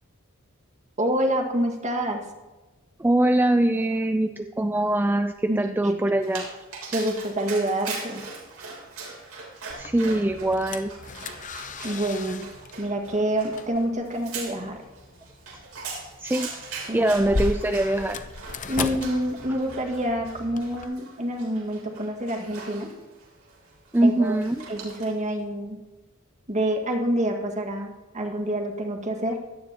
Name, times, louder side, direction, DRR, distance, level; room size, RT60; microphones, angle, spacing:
voice 1, 1.0-2.2 5.5-5.9 6.9-8.2 11.8-12.5 12.8-14.8 16.9-17.1 18.7-22.9 24.0-24.4 24.7-25.8 26.5-29.4, right 1 dB, 35° right, 2 dB, 1.9 m, -27 dB
voice 2, 3.0-6.5 9.8-10.9 16.2-16.5 16.9-18.2 18.8-18.9 23.9-24.6, right 1 dB, 10° right, 7 dB, 0.4 m, -23 dB
Dog, 6.2-25.3, right 4 dB, 85° right, 3.4 m, -41 dB
sound 1, 9.7-20.8, left 3 dB, 35° left, 0.7 m, -37 dB
17.0 x 12.5 x 3.0 m, 1.2 s
head